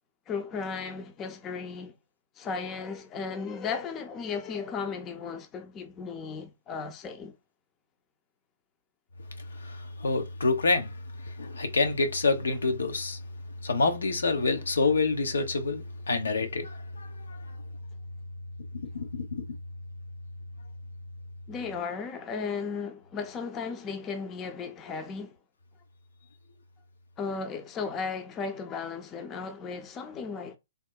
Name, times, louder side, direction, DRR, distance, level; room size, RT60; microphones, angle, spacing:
voice 1, 0.3-1.9 2.4-7.3 21.5-25.4 27.2-30.6, left 5 dB, 25° left, 0.5 m, -35 dB
voice 2, 9.6-10.9 11.2-13.2 13.6-17.4 18.9-19.4, left 3 dB, 75° left, 0.6 m, -27 dB
3.5 x 2.0 x 2.2 m
figure-of-eight pair, 120°, 0 cm